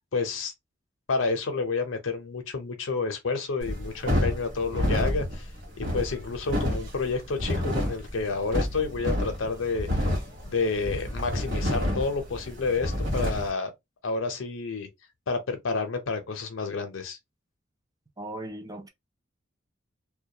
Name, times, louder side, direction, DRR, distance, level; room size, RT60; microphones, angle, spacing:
voice 1, 0.1-0.5 1.1-5.5 5.9-9.9 10.4-13.7 14.0-14.9 15.3-17.2, left 4 dB, 85° left, 0.6 m, -29 dB
sound 1, 3.6-13.5, equal, 65° right, 1.0 m, -29 dB
voice 2, 18.2-18.9, right 1 dB, 20° right, 0.4 m, -37 dB
2.2 x 2.2 x 2.8 m
head